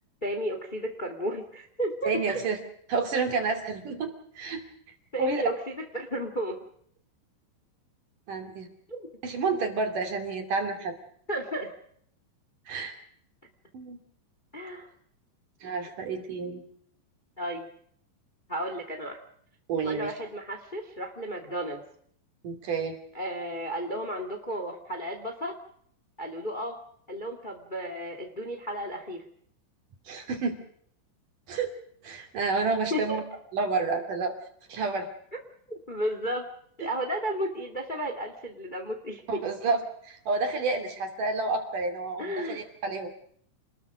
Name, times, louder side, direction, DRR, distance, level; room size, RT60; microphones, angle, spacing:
voice 1, 0.2-2.4 5.1-6.6 8.9-9.1 11.3-11.7 14.5-14.9 17.4-17.6 18.5-19.2 19.8-21.8 23.1-25.5 26.2-26.8 27.1-29.2 32.9-33.2 35.9-36.5 36.8-39.2 42.2-42.6, equal, 20° left, 5 dB, 1.5 m, -33 dB
voice 2, 2.0-2.6 2.9-4.6 5.2-5.4 8.3-8.7 9.2-11.0 12.7-13.0 13.7-14.0 15.6-16.6 19.7-20.1 22.4-23.0 30.1-30.6 31.5-31.7 32.0-33.2 33.5-34.4 34.7-35.1 36.8-36.9 39.3-43.1, right 4 dB, 50° right, 5 dB, 3.9 m, -29 dB
29.0 x 21.0 x 5.1 m, 0.65 s
omnidirectional pair, 5.5 m